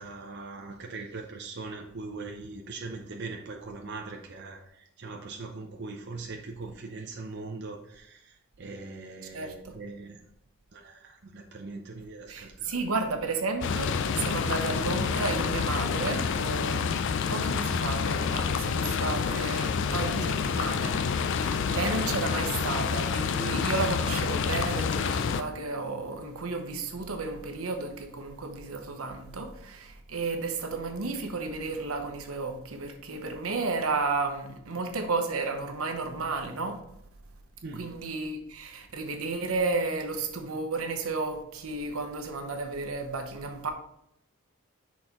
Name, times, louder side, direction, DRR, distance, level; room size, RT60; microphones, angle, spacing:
voice 1, 0.0-10.2 10.7-12.8 37.6-38.0, right 3 dB, 50° right, 0.6 m, -41 dB
voice 2, 9.3-9.8 12.3-17.0 17.3-21.0 21.3-36.8 37.8-43.7, right 3 dB, 80° right, 0.9 m, -32 dB
sound 1, 13.6-25.4, left 6 dB, 55° left, 0.4 m, -28 dB
6.2 x 4.2 x 3.7 m
head